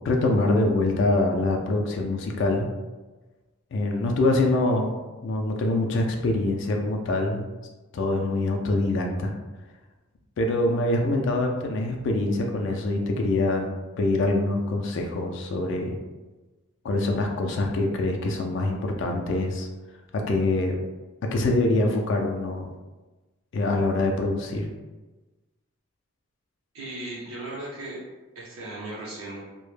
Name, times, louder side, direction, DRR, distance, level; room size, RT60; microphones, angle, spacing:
voice 1, 0.0-2.7 3.7-4.9 5.2-7.4 7.9-9.3 10.4-13.7 14.0-16.0 16.8-19.7 20.1-20.8 21.3-22.7 23.5-24.7, left 2 dB, 60° left, 2 dB, 0.3 m, -24 dB
voice 2, 26.7-28.0 28.3-29.4, right 2 dB, 85° right, -7 dB, 0.7 m, -36 dB
2.1 x 2.0 x 3.1 m, 1.2 s
head